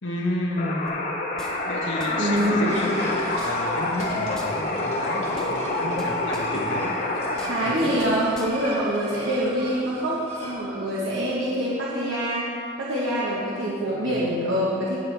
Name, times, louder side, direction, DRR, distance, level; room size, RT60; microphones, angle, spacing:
voice 1, 0.0-1.0 1.6-7.0 7.6-8.0 13.9-14.2, left 1 dB, 75° left, -2 dB, 1.1 m, -31 dB
sound 1, 0.6-7.8, left 2 dB, 45° left, 0.9 m, -27 dB
sound 2, 0.9-1.0 1.4-2.1 2.3-2.5 2.9-3.0 3.3-4.1 4.3-4.5 4.9-5.0 5.3-6.0 6.3-6.4 6.9-7.0 7.3-8.1 8.3-8.5, left 1 dB, 5° left, 0.9 m, -41 dB
voice 2, 2.2-2.8 7.5-12.5 12.8-15.0, equal, 85° right, -7 dB, 1.3 m, -25 dB
sound 3, 2.6-10.6, right 1 dB, 35° right, 2.0 m, -38 dB
17.0 x 6.1 x 3.4 m, 2.6 s
head